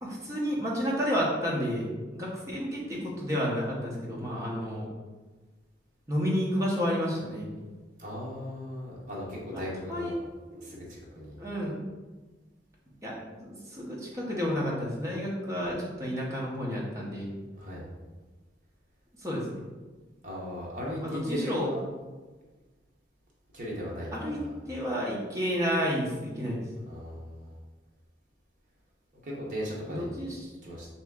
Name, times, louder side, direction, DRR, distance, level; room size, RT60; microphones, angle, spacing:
voice 1, 0.0-4.9 6.1-7.5 9.5-9.6 9.9-10.1 10.5-10.6 11.4-11.7 13.0-17.3 19.2-19.6 21.0-21.7 24.1-24.4 24.7-26.6 29.9-30.4, equal, 15° right, -4 dB, 0.8 m, -31 dB
voice 2, 8.0-10.2 10.6-11.4 17.5-17.8 20.2-21.9 23.5-24.6 26.8-27.6 29.2-30.9, equal, 45° right, -4 dB, 0.9 m, -37 dB
3.3 x 2.9 x 3.6 m, 1.3 s
head